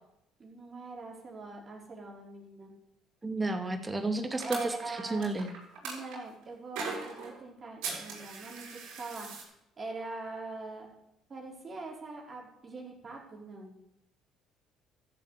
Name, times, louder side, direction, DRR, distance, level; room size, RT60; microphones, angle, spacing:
voice 1, 0.4-2.7 4.4-5.2 5.8-9.3 9.8-10.9 11.3-13.7, right 3 dB, 35° right, -2 dB, 4.8 m, -42 dB
voice 2, 3.2-5.5, right 2 dB, 20° right, 6 dB, 2.1 m, -32 dB
sound 1, 4.4-6.2 6.8-7.3 7.8-9.4, right 4 dB, 75° right, 5.6 m, -39 dB
14.0 x 7.5 x 8.5 m, 0.82 s
supercardioid pair, 70°, 0 cm